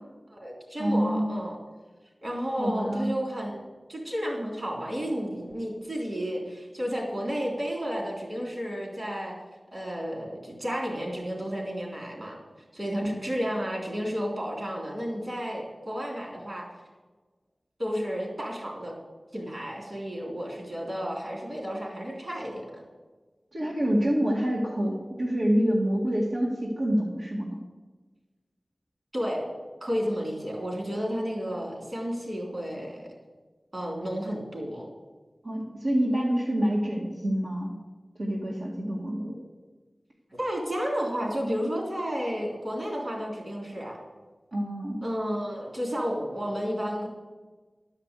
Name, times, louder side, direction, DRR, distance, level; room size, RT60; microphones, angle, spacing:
voice 1, 0.3-1.6 2.2-3.6 3.9-9.4 9.7-12.4 12.7-16.7 17.8-18.9 19.3-22.8 29.1-29.5 29.8-33.1 33.7-34.9 40.3-44.0 45.0-47.1, equal, 50° right, -1 dB, 3.5 m, -32 dB
voice 2, 0.8-1.4 2.6-3.1 23.5-27.5 35.4-37.7 38.2-39.4 44.5-45.0, equal, 80° right, -4 dB, 2.0 m, -27 dB
12.0 x 5.8 x 8.2 m, 1.3 s
wide cardioid pair, 75°, 0 cm